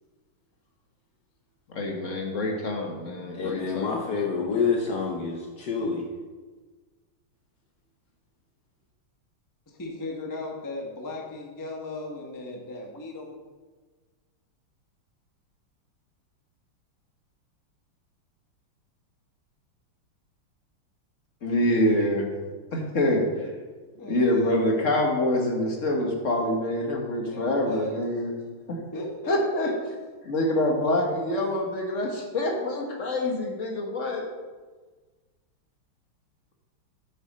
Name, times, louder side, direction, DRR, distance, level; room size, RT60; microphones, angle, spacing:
voice 1, 1.7-4.0 21.4-22.3 22.7-23.5 24.1-28.3 28.7-28.8 29.3-29.7 30.2-34.2, left 1 dB, 40° left, 1 dB, 1.4 m, -26 dB
voice 2, 3.3-6.0, left 5 dB, 60° left, 0 dB, 1.3 m, -27 dB
voice 3, 9.7-13.4 24.0-24.6 27.3-27.9 28.9-29.7, left 2 dB, 15° left, 0 dB, 0.8 m, -37 dB
9.1 x 8.5 x 4.2 m, 1.3 s
omnidirectional pair, 2.4 m